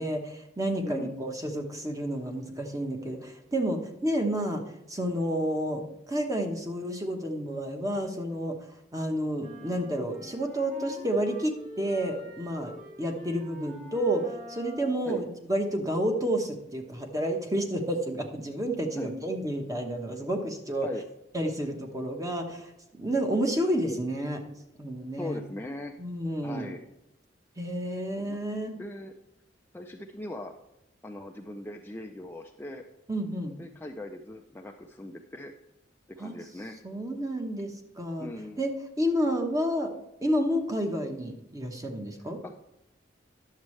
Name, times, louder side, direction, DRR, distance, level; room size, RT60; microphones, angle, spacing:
voice 1, 0.0-4.6 4.9-5.8 6.1-8.6 8.9-12.7 13.0-20.9 21.3-22.7 23.0-24.4 24.8-25.4 26.0-26.7 27.6-28.7 33.1-33.6 36.2-36.4 36.8-38.3 38.6-38.7 39.0-39.9 40.2-42.4, right 1 dB, 20° right, 3 dB, 1.1 m, -30 dB
voice 2, 0.8-1.1 15.1-15.2 18.9-19.1 20.8-21.0 25.2-25.9 26.4-26.8 28.2-28.4 28.8-29.1 29.7-30.5 31.0-32.8 33.6-35.5 36.2-36.8 38.2-38.6 42.4-42.6, left 1 dB, 10° left, 3 dB, 0.4 m, -39 dB
sound 1, 9.4-15.1, equal, 40° right, 2.0 m, -46 dB
10.5 x 7.3 x 3.2 m, 0.87 s
head